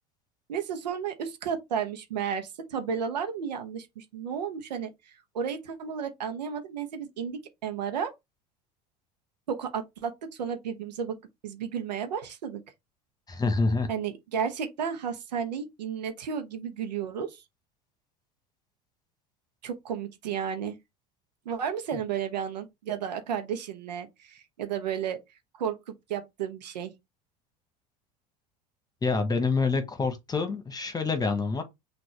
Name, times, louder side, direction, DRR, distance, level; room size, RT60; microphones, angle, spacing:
voice 1, 0.5-4.9 5.3-8.1 9.5-10.1 10.4-11.2 11.4-12.6 13.9-17.4 19.6-20.7 21.4-25.2 25.6-26.9, right 7 dB, 80° right, 0.9 m, -33 dB
voice 2, 13.3-13.9 29.0-31.6, left 4 dB, 20° left, 1.3 m, -27 dB
6.0 x 2.7 x 3.3 m
hypercardioid pair, 75°, 21 cm